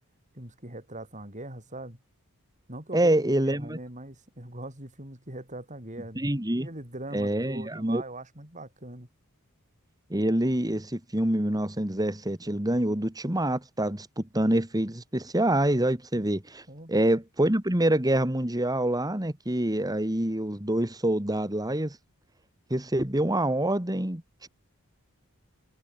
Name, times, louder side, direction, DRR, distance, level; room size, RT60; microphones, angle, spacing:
voice 1, 0.3-2.0 2.7-3.1 3.5-6.3 6.6-9.1 16.7-16.9, right 1 dB, 35° right, 7.9 m, -41 dB
voice 2, 2.9-3.8 6.2-6.7 7.1-8.0 10.1-16.6 16.9-22.0 22.7-24.5, right 1 dB, 15° right, 2.1 m, -26 dB
head